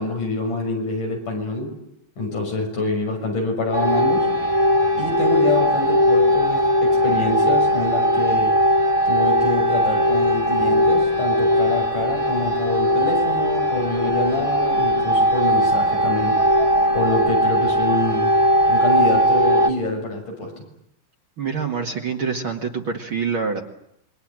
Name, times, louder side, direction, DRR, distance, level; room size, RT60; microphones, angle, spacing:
voice 1, 0.0-1.8 2.2-4.3 5.0-8.6 9.1-16.4 16.9-18.4 18.7-20.6, left 2 dB, 70° left, 2 dB, 8.0 m, -26 dB
sound 1, 3.7-19.7, equal, 15° right, 1.6 m, -19 dB
voice 2, 21.4-23.6, right 5 dB, 45° right, 3 dB, 2.5 m, -26 dB
27.0 x 23.0 x 9.0 m, 0.78 s
omnidirectional pair, 3.7 m